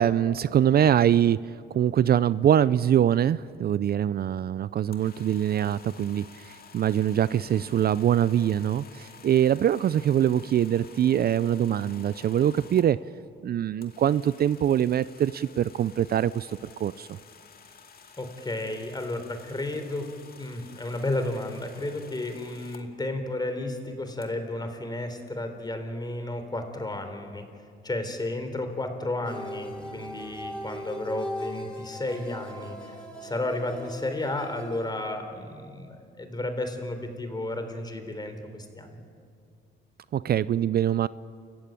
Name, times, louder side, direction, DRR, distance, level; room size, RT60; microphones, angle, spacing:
voice 1, 0.0-1.4 1.7-6.2 6.7-13.0 13.4-16.5 16.8-17.1 40.1-41.1, right 10 dB, 50° right, 17 dB, 0.5 m, -23 dB
sound 1, 4.9-12.9 13.8-22.8 24.2-24.3, left 6 dB, 50° left, 2.3 m, -51 dB
voice 2, 18.2-20.1 20.4-27.5 27.8-39.0, left 2 dB, 20° left, 7 dB, 3.7 m, -33 dB
sound 2, 29.2-34.9, equal, 5° left, 7.7 m, -39 dB
sound 3, 29.7-32.1, left 3 dB, 90° left, 4.1 m, -54 dB
29.5 x 15.0 x 9.1 m, 2.3 s
cardioid pair, 90°, 20 cm